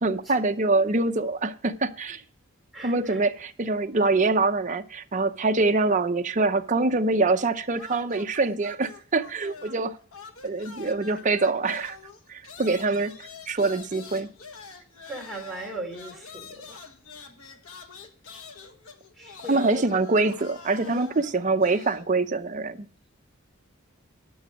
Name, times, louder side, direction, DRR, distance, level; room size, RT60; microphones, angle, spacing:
voice 1, 0.0-2.2 2.8-10.0 10.4-12.0 12.3-14.3 19.5-22.9, right 3 dB, 35° right, 0.7 m, -24 dB
voice 2, 2.7-3.2 15.1-16.8 19.2-20.0, right 2 dB, ahead, 3.0 m, -38 dB
sound 1, 7.7-9.9 10.1-22.1, left 4 dB, 80° left, 1.2 m, -46 dB
12.0 x 6.1 x 6.3 m
head